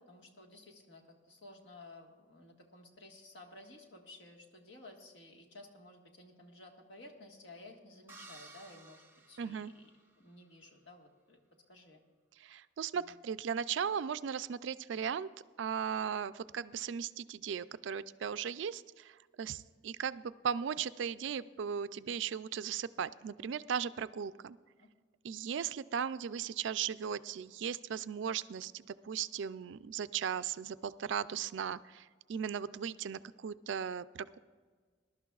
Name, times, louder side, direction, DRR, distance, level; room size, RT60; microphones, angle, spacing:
voice 1, 0.0-9.9 10.2-11.4 11.7-12.0 12.9-13.1 24.8-24.9, left 2 dB, 70° left, 1 dB, 1.6 m, -55 dB
sound 1, 8.1-10.3, right 2 dB, 10° right, 0.8 m, -55 dB
voice 2, 9.4-9.7 12.4-15.3 15.6-24.6 25.2-34.4, right 7 dB, 70° right, 15 dB, 0.4 m, -37 dB
21.0 x 11.5 x 2.4 m, 1.5 s
head